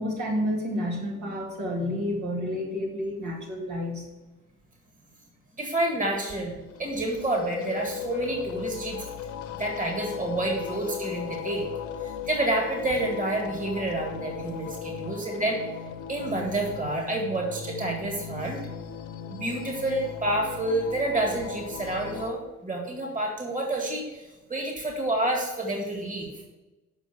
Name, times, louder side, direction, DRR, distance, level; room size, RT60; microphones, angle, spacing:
voice 1, 0.0-4.0 15.0-15.2, equal, 75° right, -2 dB, 2.4 m, -30 dB
voice 2, 5.6-9.0 9.6-11.6 12.0-15.6 16.1-18.6 19.3-26.5, right 2 dB, 25° right, 1 dB, 2.0 m, -29 dB
sound 1, 6.6-22.3, left 8 dB, 75° left, 0.8 m, -37 dB
7.2 x 5.2 x 6.1 m, 1.1 s
cardioid pair, 90°, 30 cm